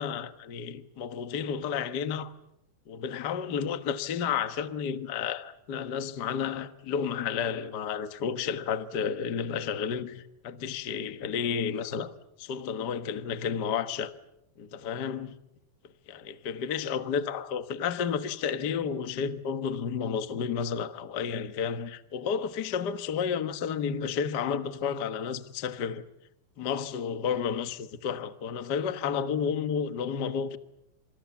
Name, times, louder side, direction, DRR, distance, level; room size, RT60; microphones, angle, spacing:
voice 1, 0.0-2.3 2.9-12.1 12.4-14.1 14.6-15.4 16.1-26.0 26.6-30.6, left 7 dB, 75° left, 0.9 m, -31 dB
30.0 x 27.5 x 7.2 m
omnidirectional pair, 4.1 m